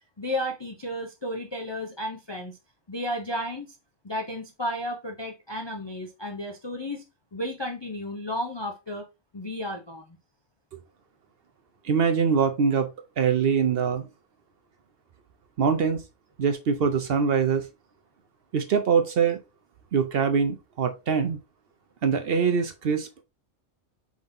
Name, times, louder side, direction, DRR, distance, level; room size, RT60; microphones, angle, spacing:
voice 1, 0.2-2.6 2.9-3.7 4.0-7.0 7.3-9.1 9.3-10.0, left 1 dB, 35° left, 0.4 m, -33 dB
voice 2, 11.8-12.9 13.2-14.1 15.6-16.0 16.4-17.6 18.5-19.4 19.9-21.4 22.0-23.2, right 6 dB, 60° right, 0.7 m, -23 dB
5.3 x 3.6 x 2.6 m
omnidirectional pair, 1.3 m